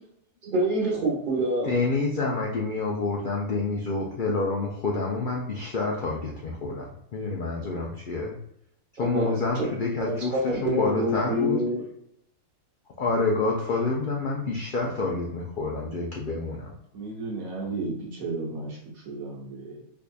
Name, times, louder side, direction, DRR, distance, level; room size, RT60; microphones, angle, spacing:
voice 1, 0.4-1.7 9.0-9.3 9.6-9.7 10.0-11.8, right 1 dB, 40° right, -4 dB, 1.1 m, -26 dB
voice 2, 1.6-8.4 9.0-11.6 13.0-16.7, left 3 dB, 85° left, -1 dB, 0.4 m, -28 dB
voice 3, 16.9-19.8, right 3 dB, 75° right, -3 dB, 1.2 m, -34 dB
4.6 x 2.6 x 2.2 m, 0.72 s
omnidirectional pair, 1.5 m